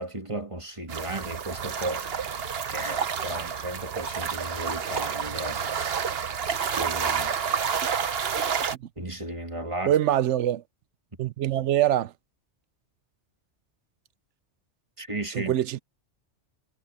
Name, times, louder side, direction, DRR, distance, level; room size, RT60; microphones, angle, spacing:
voice 1, 0.0-2.0 2.7-5.6 6.7-7.3 9.0-10.0 15.0-15.5, right 1 dB, 25° right, 2.0 m, -34 dB
sound 1, 0.9-8.7, right 7 dB, 60° right, 1.2 m, -29 dB
voice 2, 9.9-10.6 11.2-12.1 15.3-15.8, right 12 dB, 80° right, 0.9 m, -24 dB
omnidirectional pair, 1.2 m